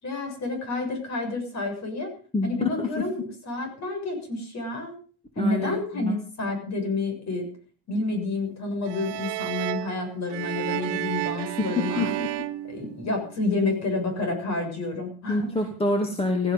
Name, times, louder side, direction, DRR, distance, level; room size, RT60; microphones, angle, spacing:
voice 1, 0.0-2.1 2.4-5.0 5.4-7.5 7.9-12.1 12.7-15.5, left 2 dB, 40° left, 4 dB, 7.1 m, -29 dB
voice 2, 2.3-2.9 5.4-6.2 11.6-12.3 15.3-16.5, left 2 dB, 15° left, 3 dB, 2.5 m, -26 dB
sound 1, 8.8-13.5, right 16 dB, 80° right, 1.1 m, -32 dB
16.5 x 15.5 x 5.4 m, 0.42 s
cardioid pair, 165°, 41 cm